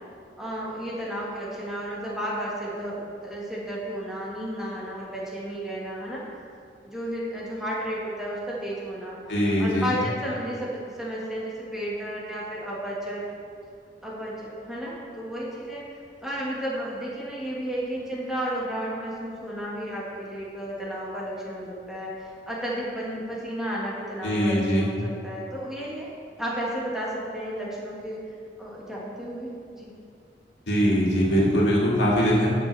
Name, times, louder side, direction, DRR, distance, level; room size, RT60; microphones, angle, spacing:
voice 1, 0.4-6.2 6.8-9.2 9.6-13.2 14.0-15.8 16.2-26.1 26.4-28.2 28.6-29.5 29.7-29.9, equal, 5° right, -6 dB, 1.6 m, -33 dB
voice 2, 9.3-9.9 24.2-24.9 30.7-32.5, equal, 80° left, -5 dB, 2.2 m, -22 dB
13.5 x 6.7 x 3.3 m, 2.3 s
head